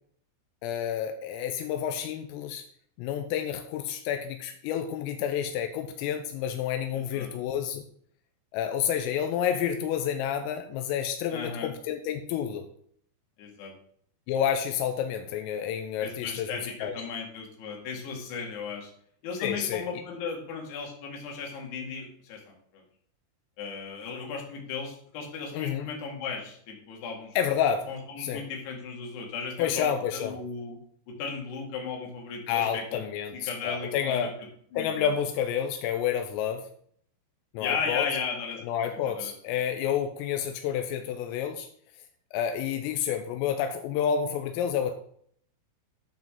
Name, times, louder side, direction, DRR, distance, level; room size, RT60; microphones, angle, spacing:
voice 1, 0.6-2.6 3.0-7.9 8.5-12.7 14.3-17.0 19.4-19.9 25.5-25.9 27.4-27.9 28.2-28.4 29.6-30.4 32.5-34.3 34.8-36.7 37.6-38.1 38.7-41.7 42.3-44.9, left 8 dB, 85° left, 5 dB, 3.4 m, -29 dB
voice 2, 6.9-7.3 11.3-11.7 13.4-13.7 16.0-18.9 19.2-22.8 23.6-27.4 27.9-29.9 30.1-30.8 31.1-33.0 33.3-34.3 34.7-35.1 37.6-38.9 39.2-39.3, left 5 dB, 60° left, 0 dB, 4.0 m, -36 dB
12.0 x 7.8 x 3.8 m, 0.62 s
omnidirectional pair, 5.9 m